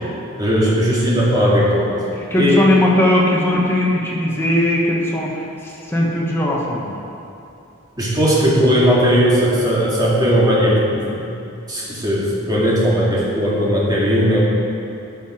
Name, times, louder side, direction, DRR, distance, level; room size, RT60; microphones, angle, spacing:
voice 1, 0.4-1.9 2.4-2.6 8.0-11.4 11.7-14.4, equal, 20° right, -6 dB, 2.2 m, -17 dB
voice 2, 2.2-7.0, left 1 dB, 10° left, -4 dB, 1.4 m, -19 dB
11.5 x 5.7 x 6.1 m, 2.7 s
head